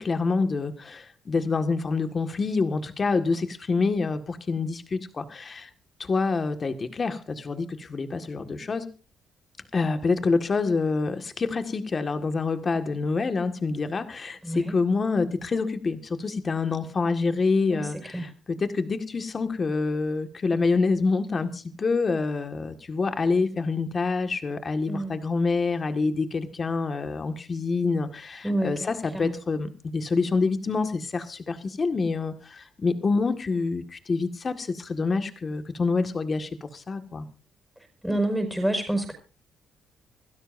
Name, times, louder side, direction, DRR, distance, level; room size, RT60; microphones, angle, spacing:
voice 1, 0.0-5.7 6.0-8.9 9.7-37.3, left 4 dB, 35° left, 8 dB, 1.8 m, -27 dB
voice 2, 28.4-29.3 38.0-39.1, right 1 dB, ahead, 4 dB, 5.6 m, -27 dB
27.0 x 12.5 x 2.7 m, 0.34 s
cardioid pair, 90°, 0 cm